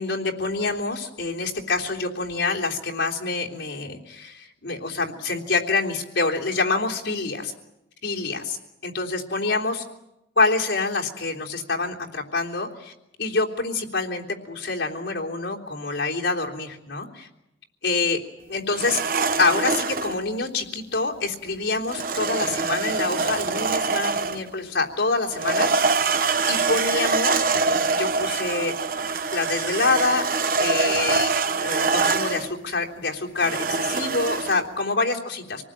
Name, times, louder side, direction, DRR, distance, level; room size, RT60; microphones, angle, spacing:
voice 1, 0.0-7.5 8.0-8.6 8.8-9.8 10.4-12.9 13.2-17.3 17.8-18.2 18.5-19.0 19.4-25.7 26.5-28.7 29.3-30.3 30.6-31.3 31.6-35.6, left 3 dB, 85° left, -1 dB, 3.5 m, -26 dB
sound 1, 18.7-20.2 21.9-24.5 25.3-32.5 33.4-34.6, right 4 dB, 50° right, 1.0 m, -24 dB
27.0 x 19.5 x 8.9 m, 0.89 s
head